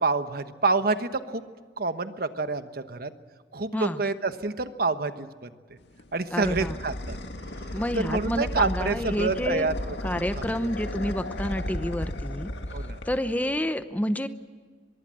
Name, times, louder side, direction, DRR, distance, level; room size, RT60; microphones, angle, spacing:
voice 1, 0.0-1.4 1.8-3.1 3.5-5.5 6.1-7.2 7.9-9.7 10.4-10.7 12.7-13.0, right 3 dB, 60° right, 10 dB, 1.2 m, -27 dB
sound 1, 5.8-13.8, left 1 dB, 80° left, 1.9 m, -35 dB
voice 2, 6.3-6.8 7.7-9.7 10.0-12.5 13.0-14.3, equal, 10° left, 11 dB, 0.8 m, -29 dB
24.0 x 22.5 x 7.6 m, 1.5 s
head